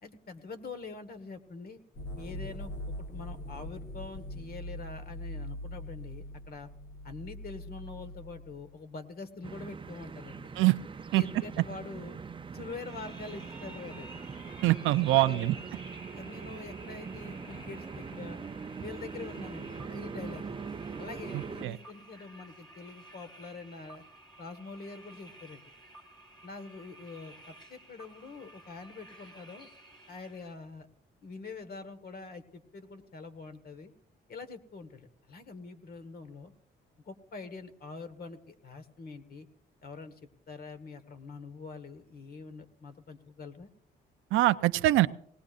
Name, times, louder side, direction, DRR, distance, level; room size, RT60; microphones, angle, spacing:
voice 1, 0.0-1.8 2.2-2.7 3.0-6.7 7.0-10.5 11.1-12.2 12.5-14.1 15.1-15.5 16.1-18.4 18.8-20.6 21.0-24.0 24.4-25.6 26.4-29.7 30.1-30.9 31.2-33.9 34.3-36.5 37.0-39.5 39.8-40.2 40.5-43.7, left 4 dB, 50° left, 9 dB, 1.6 m, -45 dB
sound 1, 1.9-8.7, left 1 dB, 80° left, 4.1 m, -42 dB
sound 2, 9.4-21.7, right 5 dB, 25° right, 0.6 m, -42 dB
sound 3, 12.7-30.5, right 1 dB, 20° left, 3.1 m, -53 dB
voice 2, 14.6-15.5 21.3-21.8 44.3-45.1, right 17 dB, 90° right, 14 dB, 0.5 m, -24 dB
19.0 x 18.5 x 2.5 m, 0.69 s
cardioid pair, 90°, 20 cm